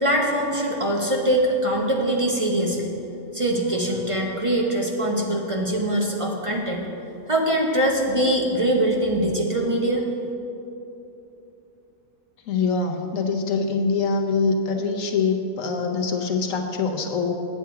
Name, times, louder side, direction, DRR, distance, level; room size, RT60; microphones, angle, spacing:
voice 1, 0.0-2.9 3.3-6.8 7.3-10.0, right 1 dB, 30° right, -1 dB, 0.6 m, -23 dB
voice 2, 12.5-17.3, left 4 dB, 65° left, 3 dB, 1.2 m, -24 dB
8.8 x 7.8 x 4.6 m, 2.9 s
omnidirectional pair, 1.5 m